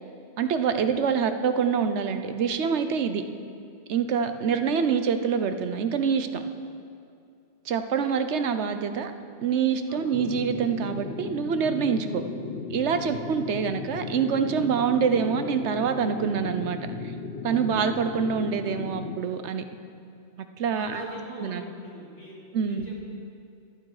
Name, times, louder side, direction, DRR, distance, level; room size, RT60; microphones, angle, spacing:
voice 1, 0.4-3.2 3.9-6.4 7.7-9.1 9.4-12.2 12.7-16.8 17.4-19.6 20.4-21.0 21.4-21.6 22.5-22.9, right 6 dB, 85° right, 9 dB, 1.1 m, -26 dB
sound 1, 10.1-19.2, left 4 dB, 65° left, 1.1 m, -36 dB
voice 2, 20.7-23.1, left 1 dB, 90° left, -6 dB, 3.9 m, -43 dB
24.5 x 8.6 x 4.9 m, 2.5 s
omnidirectional pair, 1.1 m